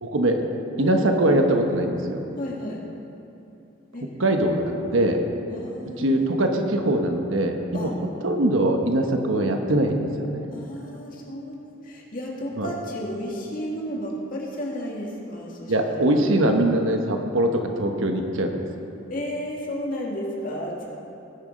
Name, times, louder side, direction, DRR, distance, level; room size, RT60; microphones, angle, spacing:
voice 1, 0.0-0.4 0.8-2.2 4.2-5.2 6.0-7.9 8.2-10.5 12.6-12.7 15.7-17.5 17.8-18.7, right 1 dB, 75° right, 4 dB, 1.2 m, -22 dB
voice 2, 2.4-2.8 3.9-4.1 5.5-6.3 7.7-7.9 10.5-11.6 11.8-16.3 19.1-20.9, equal, 40° left, -2 dB, 2.0 m, -33 dB
19.0 x 7.0 x 5.2 m, 2.7 s
head